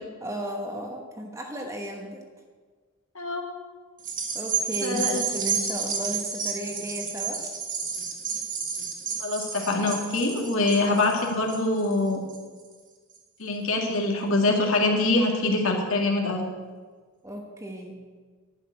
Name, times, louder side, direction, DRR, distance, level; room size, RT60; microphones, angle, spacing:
voice 1, 0.2-2.2 4.3-7.4 17.2-18.0, right 1 dB, 15° right, 1 dB, 1.1 m, -34 dB
sound 1, 4.0-12.7 13.1-13.2, right 6 dB, 35° right, 1.7 m, -31 dB
voice 2, 4.8-5.2 9.2-12.2 13.4-16.5, left 2 dB, 70° left, 1 dB, 2.1 m, -24 dB
11.5 x 6.7 x 9.4 m, 1.5 s
head